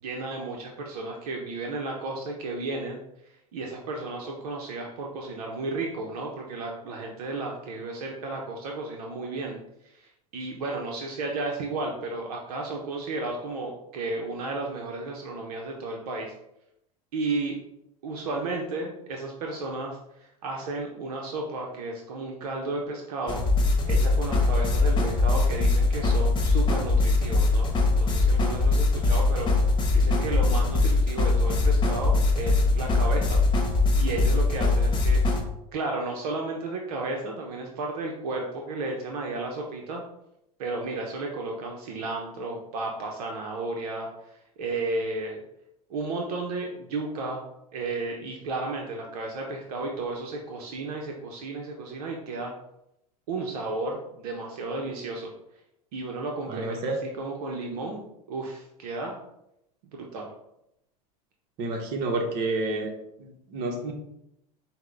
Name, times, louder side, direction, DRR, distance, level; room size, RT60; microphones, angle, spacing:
voice 1, 0.0-3.0 3.5-9.6 9.8-16.3 17.1-17.6 18.0-23.4 23.8-27.7 28.0-29.5 29.9-33.4 34.0-35.2 35.7-40.0 40.6-45.4 45.9-47.4 47.7-52.5 53.3-55.3 55.9-58.0 58.3-59.2 59.9-60.3, right 2 dB, 75° right, 0 dB, 0.7 m, -33 dB
sound 1, 23.3-35.4, left 3 dB, 25° left, 1.0 m, -22 dB
voice 2, 56.5-57.0 61.6-62.9 63.2-63.9, right 2 dB, 55° right, 3 dB, 1.0 m, -29 dB
5.7 x 2.2 x 3.3 m, 0.81 s
hypercardioid pair, 95°, 20 cm